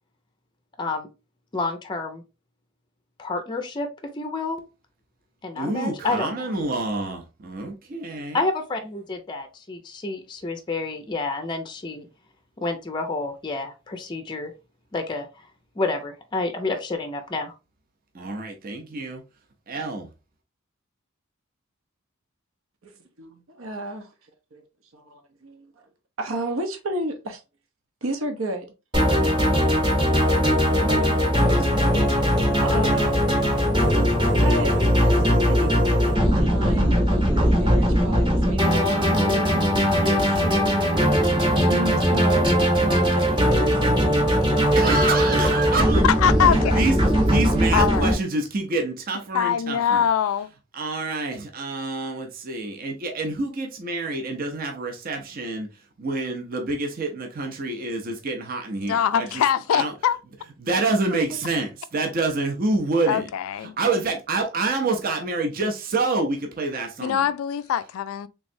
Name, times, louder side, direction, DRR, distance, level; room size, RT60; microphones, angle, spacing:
voice 1, 1.5-2.2 3.2-4.6 5.4-6.6 8.3-12.1 12.6-14.5 14.9-15.3 15.8-17.5, left 3 dB, 20° left, 0.5 m, -29 dB
voice 2, 5.6-8.4 18.1-19.2 19.7-20.1 44.7-46.0 46.5-46.9 47.3-50.1 50.7-55.7 56.0-59.4 59.7-59.9 60.6-63.3 63.6-67.2, right 3 dB, 45° right, 0.6 m, -27 dB
voice 3, 23.2-24.1 24.5-24.6 24.9-25.7 26.2-27.4 28.0-28.7 29.1-29.6 30.7-32.1 32.6-33.3 33.8-37.0 37.3-39.6 40.0-41.1 41.5-42.5 42.8-43.8 46.2-46.5 61.1-61.2, right 1 dB, 75° right, 0.8 m, -32 dB
sound 1, 28.9-48.1, equal, 20° right, 0.9 m, -20 dB
voice 4, 46.0-46.6 47.7-48.1 49.3-50.5 58.9-60.2 63.1-63.7 67.0-68.3, left 8 dB, 85° left, 0.3 m, -22 dB
3.4 x 3.1 x 2.6 m
head